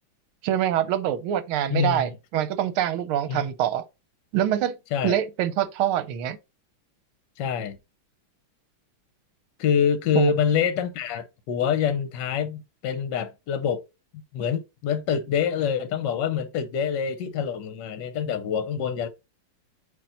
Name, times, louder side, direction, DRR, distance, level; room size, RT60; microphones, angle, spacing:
voice 1, 0.4-3.8 4.3-4.8 5.0-6.4 10.1-10.3, right 11 dB, 80° right, 1.6 m, -25 dB
voice 2, 1.7-2.1 3.3-3.4 4.9-5.2 7.4-7.8 9.6-13.8 14.3-19.1, left 7 dB, 70° left, 1.2 m, -26 dB
8.3 x 3.0 x 3.8 m
omnidirectional pair, 2.4 m